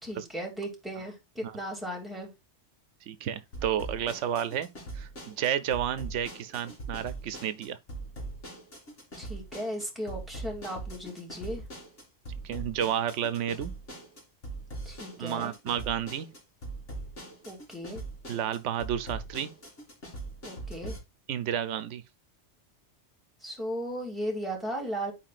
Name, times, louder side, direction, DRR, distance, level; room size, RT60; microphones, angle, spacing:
voice 1, 0.0-2.3 9.2-11.6 14.8-15.5 17.5-18.0 20.4-20.9 23.4-25.1, equal, ahead, 2.4 m, -36 dB
voice 2, 3.1-4.7 4.9-7.8 12.4-13.7 15.2-16.3 18.3-19.5 21.3-22.0, right 9 dB, 90° right, 1.0 m, -31 dB
sound 1, 3.5-21.0, right 2 dB, 90° left, 3.2 m, -41 dB
10.5 x 4.8 x 2.4 m
omnidirectional pair, 1.2 m